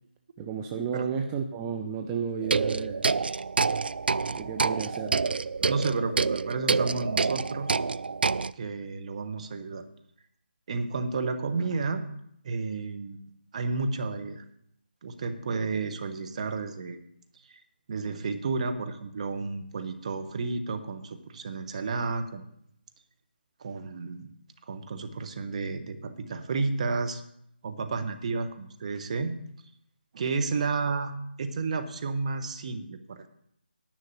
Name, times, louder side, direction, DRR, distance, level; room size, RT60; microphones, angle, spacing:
voice 1, 0.4-3.1 4.3-5.2, right 6 dB, 15° right, 4 dB, 0.6 m, -32 dB
sound 1, 2.4-8.5, right 4 dB, 65° right, 0.4 m, -27 dB
voice 2, 5.6-7.7 8.6-9.9 10.7-12.0 12.4-13.2 13.5-14.4 15.0-17.0 17.9-22.4 23.6-24.3 24.7-27.2 27.6-29.4 30.1-31.1 31.4-33.3, right 4 dB, 40° right, 7 dB, 1.1 m, -31 dB
10.5 x 6.3 x 8.4 m, 0.72 s
figure-of-eight pair, 150°, 6 cm